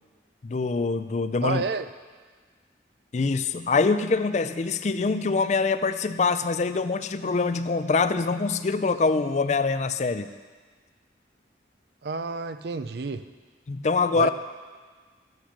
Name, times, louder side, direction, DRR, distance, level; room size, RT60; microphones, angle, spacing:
voice 1, 0.4-1.6 3.1-10.3 13.7-14.3, left 4 dB, 40° left, 11 dB, 0.4 m, -24 dB
voice 2, 1.4-1.9 12.0-13.2 14.1-14.3, right 4 dB, 60° right, 11 dB, 0.5 m, -30 dB
11.5 x 8.1 x 5.9 m, 1.5 s
head